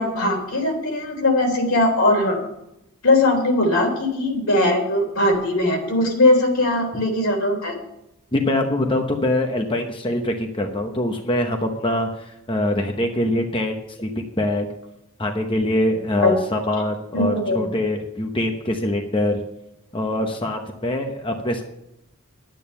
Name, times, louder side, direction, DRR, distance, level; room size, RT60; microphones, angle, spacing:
voice 1, 0.0-2.4 3.0-7.8 16.2-16.3 17.1-17.6, left 2 dB, 80° left, 2 dB, 3.4 m, -20 dB
voice 2, 8.3-14.7 15.2-19.4 19.9-21.6, left 1 dB, 25° left, 4 dB, 0.9 m, -23 dB
11.0 x 9.0 x 5.6 m, 0.84 s
head